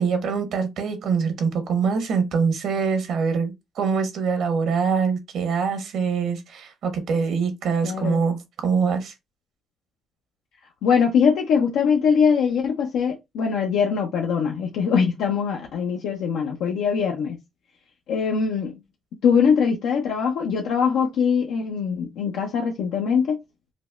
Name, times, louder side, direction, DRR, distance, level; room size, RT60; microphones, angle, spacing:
voice 1, 0.0-9.1, right 5 dB, 75° right, 1.0 m, -24 dB
voice 2, 7.8-8.2 10.8-17.4 18.1-18.8 19.2-23.4, left 6 dB, 85° left, 0.5 m, -22 dB
4.9 x 2.0 x 2.4 m
cardioid pair, 90°, 0 cm